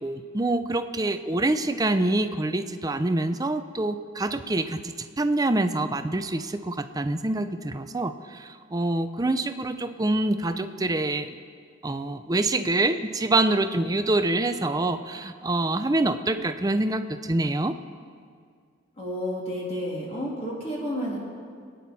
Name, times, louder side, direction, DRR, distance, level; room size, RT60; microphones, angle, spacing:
voice 1, 0.0-11.4 11.8-17.7, right 2 dB, 20° right, 9 dB, 0.5 m, -26 dB
voice 2, 19.0-21.2, equal, 30° left, -4 dB, 2.5 m, -31 dB
23.5 x 9.3 x 4.2 m, 2.1 s
head